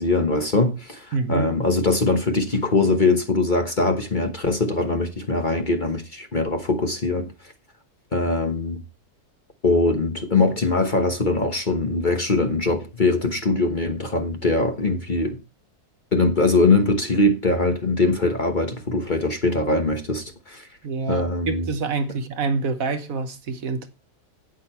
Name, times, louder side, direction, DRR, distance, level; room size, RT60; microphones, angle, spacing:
voice 1, 0.0-7.3 8.1-8.8 9.6-15.4 16.1-20.7 21.1-21.7, left 2 dB, 35° left, 1.1 m, -22 dB
voice 2, 1.1-1.5 20.8-23.9, right 4 dB, 60° right, 1.4 m, -26 dB
8.8 x 8.8 x 4.3 m
omnidirectional pair, 1.7 m